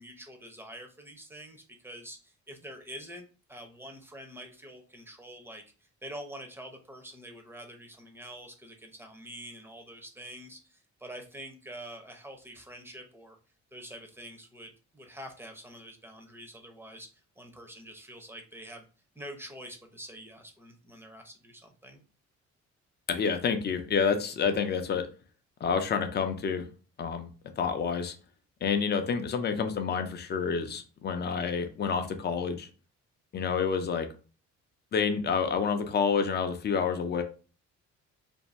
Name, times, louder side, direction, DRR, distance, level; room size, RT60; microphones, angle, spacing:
voice 1, 0.0-13.4 13.7-18.8 19.1-22.0, right 1 dB, 10° right, 4 dB, 0.6 m, -46 dB
voice 2, 23.1-25.1 25.6-26.7 27.0-27.3 27.6-28.1 28.6-32.7 33.3-34.1 34.9-37.2, left 6 dB, 35° left, 7 dB, 0.5 m, -28 dB
2.6 x 2.1 x 3.1 m, 0.35 s
cardioid pair, 90°, 30 cm